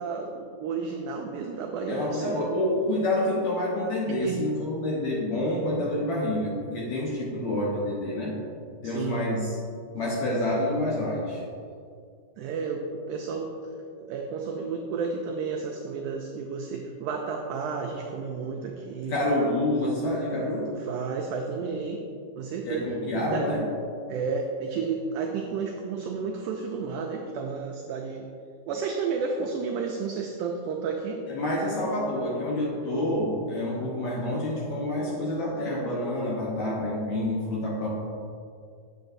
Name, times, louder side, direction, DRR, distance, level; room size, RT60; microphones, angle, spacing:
voice 1, 0.0-2.5 4.1-4.4 8.8-9.2 12.4-13.5 14.1-19.1 20.8-22.0 22.3-23.5 24.1-28.2 28.7-31.2, right 5 dB, 90° right, 1 dB, 1.8 m, -32 dB
voice 2, 1.9-8.3 8.8-9.6 9.9-11.4 19.1-20.7 22.6-23.6 31.3-37.9, left 1 dB, 65° left, -4 dB, 1.9 m, -28 dB
8.0 x 6.9 x 2.6 m, 2.3 s
omnidirectional pair, 4.1 m